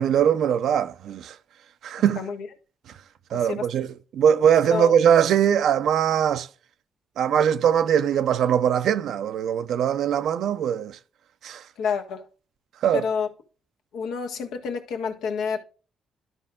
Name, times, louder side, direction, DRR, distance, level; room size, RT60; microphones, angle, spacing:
voice 1, 0.0-1.3 1.8-2.2 3.3-3.9 4.1-6.5 7.2-11.0 11.4-11.6 12.8-13.1, right 9 dB, 70° right, 0.6 m, -21 dB
voice 2, 2.2-2.5 3.3-3.7 4.7-4.9 11.8-12.3 12.9-13.3 13.9-15.6, left 6 dB, 85° left, 1.6 m, -28 dB
12.5 x 4.7 x 3.6 m
cardioid pair, 90°, 0 cm